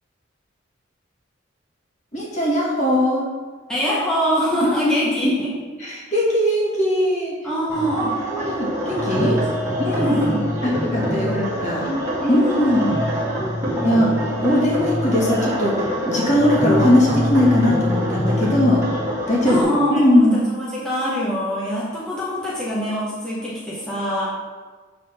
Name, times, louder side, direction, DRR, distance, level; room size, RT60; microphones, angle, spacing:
voice 1, 2.1-3.2 5.2-5.3 5.8-7.3 8.3-9.4 9.8-10.2 10.6-11.8 12.3-12.8 13.8-18.8 19.3-19.6 19.9-20.4, left 1 dB, 35° left, -4 dB, 1.7 m, -19 dB
voice 2, 3.7-5.6 7.4-8.7 9.1-9.5 9.8-10.5 11.1-11.4 12.2-13.0 19.4-24.3, equal, 5° left, -8 dB, 1.0 m, -24 dB
sound 1, 7.7-19.6, equal, 15° right, 1.6 m, -24 dB
6.9 x 3.7 x 5.6 m, 1.4 s
head